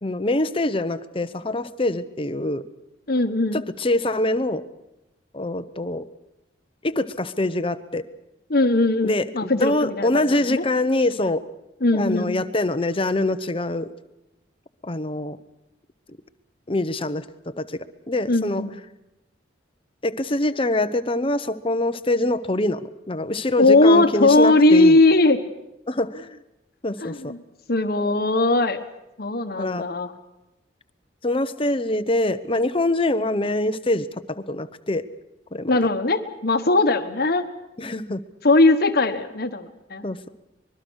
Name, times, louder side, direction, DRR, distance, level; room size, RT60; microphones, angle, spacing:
voice 1, 0.0-2.6 3.5-4.7 5.3-6.1 6.8-8.0 9.0-11.4 11.9-13.9 14.8-15.4 16.7-17.3 17.6-18.6 20.0-25.0 25.9-26.4 26.8-27.3 29.6-29.9 31.2-35.1 35.5-35.7 37.8-38.2 40.0-40.3, left 2 dB, 30° left, 11 dB, 1.0 m, -24 dB
voice 2, 3.1-3.6 8.5-10.6 11.8-12.4 18.3-18.7 23.6-25.4 27.0-27.4 27.7-28.8 29.2-30.1 35.7-37.5 38.4-40.0, left 2 dB, 55° left, 7 dB, 1.4 m, -19 dB
25.0 x 22.0 x 6.4 m, 0.92 s
head